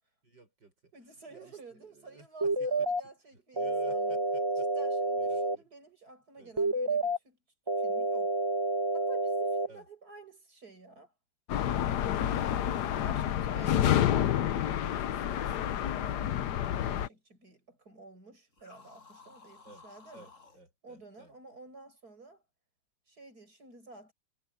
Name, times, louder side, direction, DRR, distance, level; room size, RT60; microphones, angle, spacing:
voice 1, 0.2-0.9 1.3-2.9 3.3-4.7 5.2-5.7 6.4-6.5 9.7-9.9 12.8-13.4 19.6-19.8 20.1-21.3, right 3 dB, 80° right, 8.0 m, -54 dB
voice 2, 0.9-4.2 4.6-7.4 7.8-8.4 8.9-11.1 12.8-20.3 20.8-22.4 23.1-24.1, right 3 dB, 55° right, 8.2 m, -52 dB
sound 1, 2.4-3.0 3.6-5.6 6.6-7.2 7.7-9.7, right 1 dB, 15° right, 1.4 m, -29 dB
sound 2, 11.5-17.1, left 10 dB, 70° left, 1.4 m, -29 dB
sound 3, 18.5-20.6, left 4 dB, 40° left, 7.8 m, -55 dB
omnidirectional pair, 2.0 m